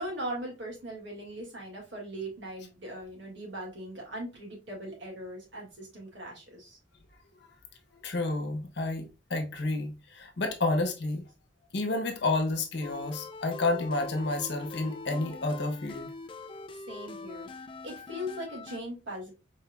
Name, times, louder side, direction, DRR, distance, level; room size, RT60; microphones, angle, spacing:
voice 1, 0.0-6.8 16.7-17.5 17.8-19.3, equal, 70° right, 2.0 m, -39 dB
voice 2, 8.0-11.2 11.7-16.1, left 2 dB, 60° left, 0.9 m, -30 dB
sound 1, 12.8-18.8, left 3 dB, 25° left, 0.3 m, -43 dB
4.5 x 3.3 x 2.3 m
head